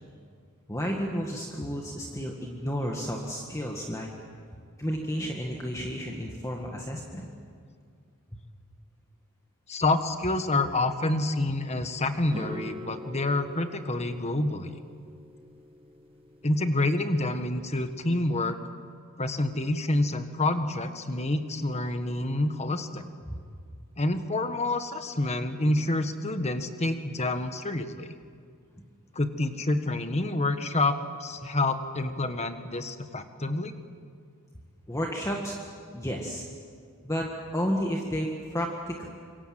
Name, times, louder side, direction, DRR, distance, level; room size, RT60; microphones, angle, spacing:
voice 1, 0.7-4.1 4.8-7.3 23.3-23.4 34.9-35.5 35.9-36.5 37.0-39.1, equal, 15° left, 0 dB, 1.9 m, -32 dB
voice 2, 9.7-14.8 16.4-18.6 19.2-23.0 24.0-28.1 29.1-33.7, left 2 dB, 30° left, 8 dB, 1.5 m, -28 dB
sound 1, 12.3-17.5, left 1 dB, 25° right, 1.4 m, -44 dB
26.5 x 23.5 x 7.8 m, 2.1 s
head